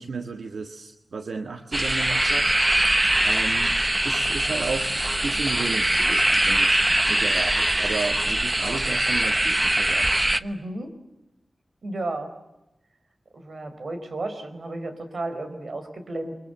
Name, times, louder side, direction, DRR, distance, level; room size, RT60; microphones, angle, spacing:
voice 1, 0.0-2.6 3.2-3.7 4.0-4.9 5.2-10.2, right 4 dB, 85° right, 6 dB, 1.6 m, -33 dB
sound 1, 1.7-10.4, right 1 dB, 20° right, 0.9 m, -22 dB
voice 2, 10.4-10.9 11.8-12.3 13.3-16.3, right 2 dB, 60° right, 8 dB, 4.6 m, -33 dB
30.0 x 24.0 x 8.0 m, 0.95 s
wide cardioid pair, 110°, 0 cm